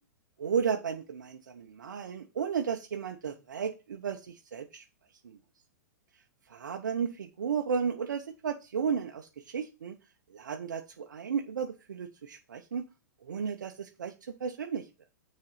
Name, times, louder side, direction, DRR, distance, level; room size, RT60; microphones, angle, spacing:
voice 1, 0.4-4.8 5.2-5.4 6.5-9.9 10.3-12.8 13.2-14.9, right 6 dB, 80° right, 4 dB, 0.8 m, -34 dB
6.5 x 4.2 x 5.7 m, 0.30 s
hypercardioid pair, 115°, 10 cm